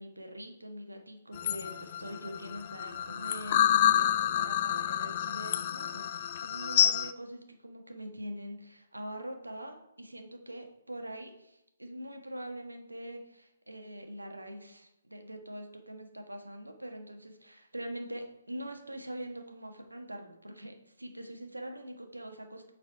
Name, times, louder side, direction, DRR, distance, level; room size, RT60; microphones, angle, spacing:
voice 1, 0.0-22.7, right 1 dB, 85° right, 4 dB, 1.2 m, -43 dB
sound 1, 1.3-7.1, left 11 dB, 35° left, 0.4 m, -28 dB
8.1 x 4.1 x 4.6 m, 0.82 s
figure-of-eight pair, 135°, 0 cm